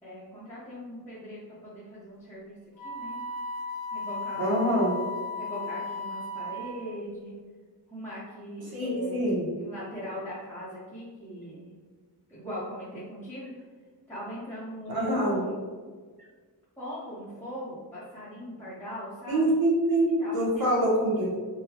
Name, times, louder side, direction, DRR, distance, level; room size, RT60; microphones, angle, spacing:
voice 1, 0.0-2.6 2.8-3.2 3.9-4.7 5.3-7.4 7.9-11.7 12.3-13.5 14.1-15.6 16.8-19.5 20.2-20.7, equal, 5° left, -11 dB, 0.8 m, -40 dB
Wind instrument woodwind instrument, 2.8-6.9, left 2 dB, 55° left, 0.7 m, -35 dB
voice 2, 4.4-4.9 8.7-9.5 14.9-15.4 19.3-21.4, right 1 dB, 65° right, -5 dB, 1.2 m, -25 dB
3.8 x 2.2 x 2.8 m, 1.5 s
wide cardioid pair, 120°, 40 cm